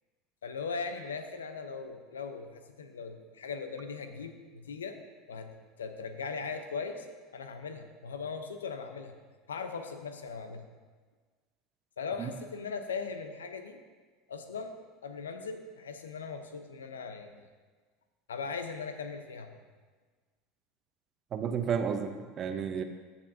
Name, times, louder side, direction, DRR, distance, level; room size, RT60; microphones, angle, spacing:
voice 1, 0.4-5.0 5.3-7.1 7.3-9.2 9.5-10.7 12.0-13.8 14.3-14.7 15.0-17.5 18.3-19.6, left 5 dB, 85° left, 7 dB, 0.8 m, -39 dB
voice 2, 21.3-22.8, right 7 dB, 40° right, 7 dB, 0.9 m, -32 dB
14.5 x 7.0 x 2.8 m, 1.4 s
hypercardioid pair, 80°, 0 cm